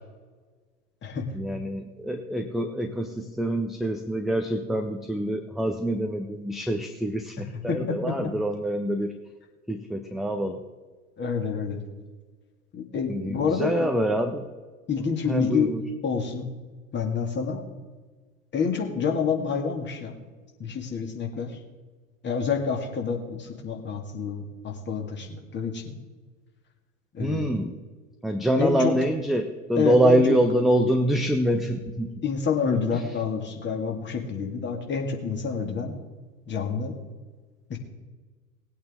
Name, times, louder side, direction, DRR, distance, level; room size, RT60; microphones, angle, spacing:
voice 1, 1.3-9.1 9.7-10.6 13.1-14.5 15.3-15.8 27.2-27.8 28.2-32.1 32.9-33.0, right 1 dB, ahead, 5 dB, 0.7 m, -25 dB
voice 2, 7.7-8.3 11.2-11.8 12.7-13.9 14.9-15.7 16.0-16.5 16.9-17.6 18.5-20.2 20.6-21.5 22.2-26.0 27.1-27.5 28.6-28.9 29.7-30.4 32.2-35.9 36.5-36.9 37.7-37.8, left 5 dB, 25° left, 2 dB, 2.1 m, -28 dB
19.0 x 8.7 x 3.7 m, 1.4 s
figure-of-eight pair, 80°, 42 cm